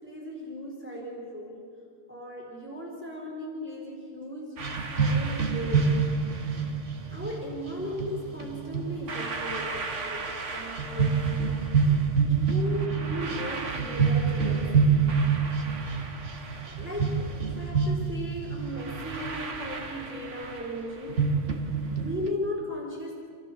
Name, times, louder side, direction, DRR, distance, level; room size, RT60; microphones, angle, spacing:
voice 1, 0.0-1.7 2.1-6.0 7.1-11.6 12.3-14.9 16.6-21.3 22.0-23.2, left 1 dB, 10° right, -3 dB, 4.2 m, -37 dB
sound 1, 4.6-22.3, right 5 dB, 55° right, 1.8 m, -28 dB
30.0 x 13.5 x 7.1 m, 2.3 s
omnidirectional pair, 1.5 m